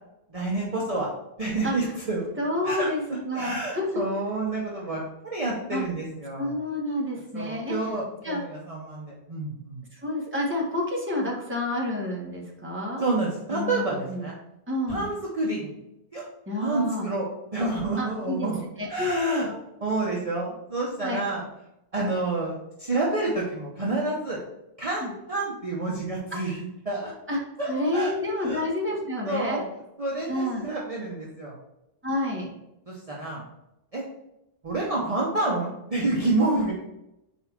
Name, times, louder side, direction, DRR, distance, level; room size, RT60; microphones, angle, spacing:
voice 1, 0.3-1.1 1.4-2.3 2.6-2.9 3.3-6.5 7.3-9.8 13.0-14.3 14.9-15.7 16.1-16.2 16.6-17.3 17.5-18.6 18.9-19.5 19.8-21.4 21.9-24.4 24.8-26.6 26.8-27.1 27.6-28.1 28.4-28.6 29.2-29.7 30.0-31.5 32.9-33.4 33.9-34.0 34.6-36.7, right 2 dB, 35° right, -4 dB, 1.0 m, -28 dB
voice 2, 2.4-4.0 5.7-5.8 6.4-7.9 8.2-8.4 9.9-13.0 13.5-14.3 14.7-15.0 16.5-17.1 18.0-18.5 18.8-19.5 21.0-21.2 25.0-25.1 27.3-27.4 27.7-29.6 30.3-30.6 32.0-32.5, left 1 dB, 10° right, -3 dB, 1.4 m, -29 dB
4.7 x 4.3 x 5.9 m, 0.87 s
omnidirectional pair, 1.1 m